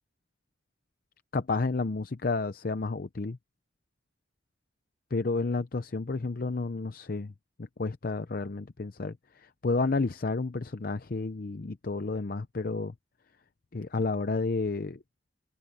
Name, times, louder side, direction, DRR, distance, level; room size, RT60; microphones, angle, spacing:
voice 1, 1.3-3.4 5.1-7.3 7.6-12.9 13.7-15.0, left 3 dB, 50° left, 0.6 m, -31 dB
open air
head